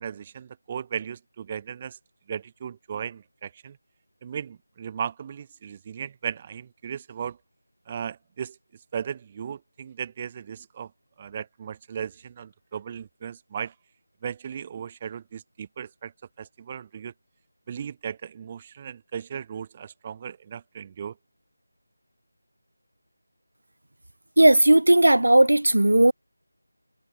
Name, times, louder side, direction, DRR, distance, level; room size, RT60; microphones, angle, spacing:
voice 1, 0.0-2.0 2.3-3.8 4.2-7.4 7.9-8.6 8.9-10.9 11.2-13.7 14.2-16.1 16.4-17.1 17.7-21.1, right 8 dB, 20° right, 1.0 m, -36 dB
voice 2, 24.4-26.1, right 1 dB, 75° right, 0.5 m, -16 dB
figure-of-eight pair, 165°, 0 cm